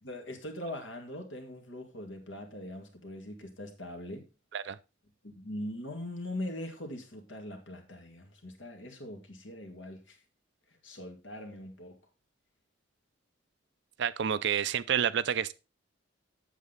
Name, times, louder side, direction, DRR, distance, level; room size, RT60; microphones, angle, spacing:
voice 1, 0.0-4.3 5.2-10.2 10.8-12.0, left 1 dB, 75° left, 2.2 m, -41 dB
voice 2, 14.0-15.5, right 8 dB, 65° right, 0.5 m, -29 dB
8.3 x 7.4 x 4.0 m
head